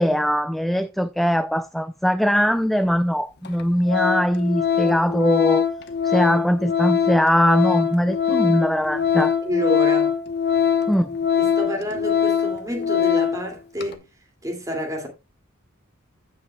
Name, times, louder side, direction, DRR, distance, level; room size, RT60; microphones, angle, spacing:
voice 1, 0.0-5.6 6.0-9.3 10.9-11.1, equal, ahead, 0.3 m, -21 dB
Organ, 2.8-2.9 3.5-3.6 3.9-13.5 13.8-13.9, left 7 dB, 50° left, 1.0 m, -22 dB
voice 2, 9.4-10.1 11.4-14.1 14.4-15.1, equal, 15° right, 2.4 m, -28 dB
15.5 x 5.6 x 2.2 m
head